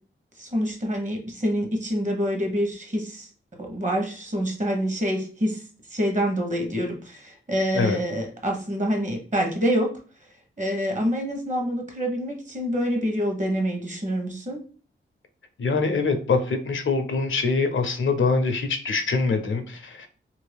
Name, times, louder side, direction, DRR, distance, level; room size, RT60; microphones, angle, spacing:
voice 1, 0.4-3.3 3.6-5.6 5.9-9.9 10.6-14.6, equal, 35° right, 2 dB, 0.9 m, -26 dB
voice 2, 15.6-20.1, left 4 dB, 65° left, 8 dB, 0.5 m, -24 dB
2.9 x 2.6 x 3.3 m, 0.40 s
wide cardioid pair, 100°, 21 cm